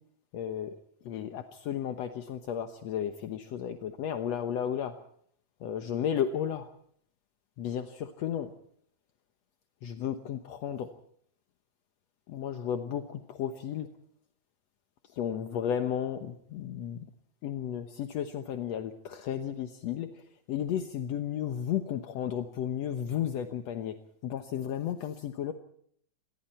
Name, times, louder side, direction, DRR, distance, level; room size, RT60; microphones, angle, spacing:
voice 1, 0.3-0.7 1.1-5.0 5.6-6.7 7.6-8.5 9.8-10.9 12.3-13.9 15.1-17.0 17.4-20.2 20.5-23.9 24.2-25.5, left 9 dB, 65° left, 7 dB, 1.8 m, -33 dB
28.0 x 22.0 x 4.4 m, 0.64 s
omnidirectional pair, 4.2 m